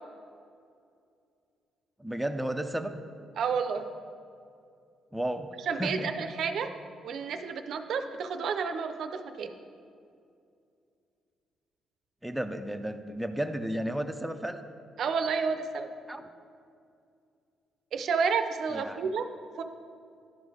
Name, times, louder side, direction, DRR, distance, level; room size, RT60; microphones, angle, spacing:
voice 1, 2.0-2.9 5.1-6.3 12.2-14.6 16.1-16.2 18.7-19.1, right 1 dB, 5° right, 6 dB, 0.5 m, -33 dB
voice 2, 3.4-3.9 5.7-6.7 7.0-9.5 15.0-15.9 17.9-19.2 19.6-19.7, right 5 dB, 65° right, 8 dB, 0.5 m, -30 dB
11.0 x 3.8 x 4.8 m, 2.4 s
cardioid pair, 90°, 0 cm